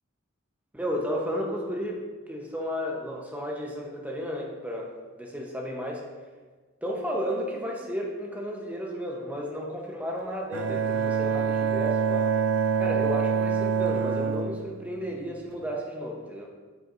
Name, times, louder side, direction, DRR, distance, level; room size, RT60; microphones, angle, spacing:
voice 1, 0.7-6.1 6.8-12.4 12.8-16.5, equal, 5° right, -1 dB, 1.0 m, -33 dB
Bowed string instrument, 10.5-15.5, right 6 dB, 65° right, 0.6 m, -26 dB
9.0 x 6.7 x 2.6 m, 1.4 s
head